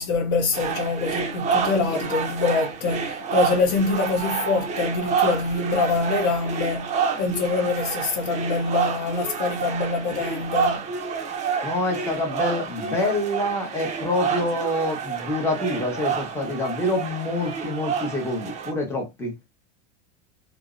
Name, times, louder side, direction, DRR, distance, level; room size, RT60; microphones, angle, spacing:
voice 1, 0.0-10.9, left 4 dB, 55° left, 0.6 m, -25 dB
sound 1, 0.5-18.7, right 6 dB, 20° right, 0.4 m, -29 dB
voice 2, 11.6-19.3, left 1 dB, 10° left, 0.7 m, -26 dB
2.6 x 2.0 x 2.4 m
supercardioid pair, 130°, 33 cm